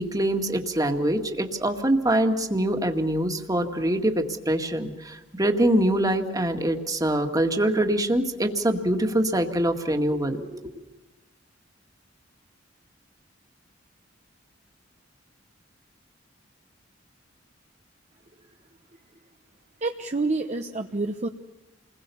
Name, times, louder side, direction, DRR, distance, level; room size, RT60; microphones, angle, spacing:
voice 1, 0.0-10.7, right 1 dB, 20° right, 4 dB, 2.0 m, -24 dB
voice 2, 19.8-21.3, right 3 dB, 35° right, 4 dB, 1.0 m, -28 dB
29.0 x 21.0 x 7.1 m, 1.1 s
head